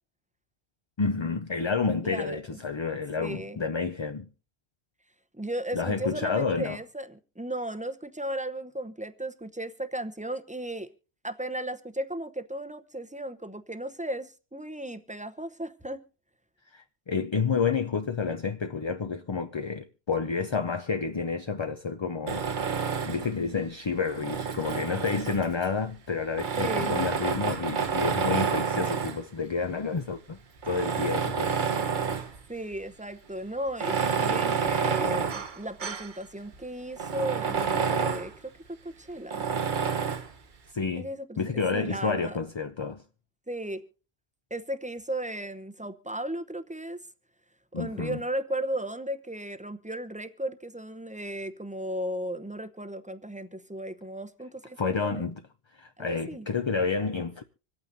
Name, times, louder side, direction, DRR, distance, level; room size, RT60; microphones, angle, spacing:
voice 1, 1.0-4.3 5.7-6.8 16.7-22.5 23.0-30.4 30.6-31.9 40.7-41.1 41.4-43.0 47.7-48.2 54.8-55.4 55.7-57.4, left 5 dB, 35° left, 0.5 m, -30 dB
voice 2, 2.0-2.4 3.2-3.6 5.3-10.9 11.2-16.0 26.6-27.0 32.5-39.4 41.0-42.4 43.5-43.8 44.5-47.0 47.7-55.2 56.0-56.5, right 1 dB, 10° right, 0.7 m, -35 dB
Tools, 22.3-23.4 24.0-25.7 26.3-29.3 30.0-30.1 30.6-32.4 32.7-32.8 33.7-36.1 36.5-36.6 37.0-38.3 39.3-40.3, right 6 dB, 55° right, 1.0 m, -29 dB
26.0 x 8.8 x 2.7 m
omnidirectional pair, 1.0 m